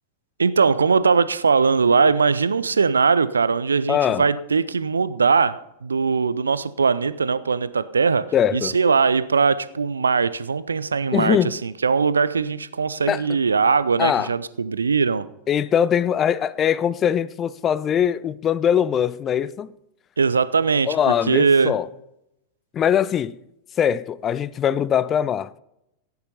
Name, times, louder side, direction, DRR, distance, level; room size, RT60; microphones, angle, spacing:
voice 1, 0.4-8.2 8.5-15.2 20.2-20.9 21.3-21.7, right 5 dB, 75° right, 0.7 m, -20 dB
voice 2, 3.9-4.3 8.3-8.8 11.1-11.6 13.1-13.3 14.0-14.3 15.5-19.7 20.9-21.9 22.7-23.4 23.8-25.6, left 9 dB, 25° left, 0.5 m, -21 dB
16.0 x 9.6 x 5.4 m
figure-of-eight pair, 90°, 0 cm